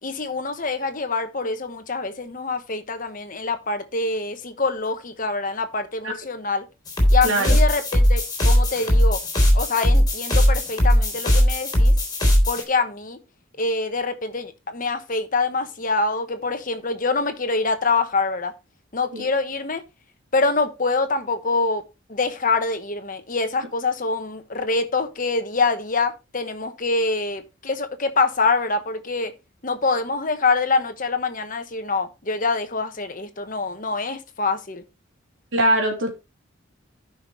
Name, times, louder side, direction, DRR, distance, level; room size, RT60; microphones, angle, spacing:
voice 1, 0.0-6.6 7.1-9.2 9.5-11.9 12.5-13.2 13.6-18.5 18.9-19.8 20.3-21.8 22.1-29.3 29.6-34.8, left 3 dB, 40° left, 1.2 m, -25 dB
sound 1, 6.9-12.6, equal, 20° left, 3.7 m, -18 dB
voice 2, 7.2-7.6 19.1-19.3 35.5-36.1, right 1 dB, 80° right, 3.1 m, -21 dB
14.5 x 5.8 x 3.1 m
head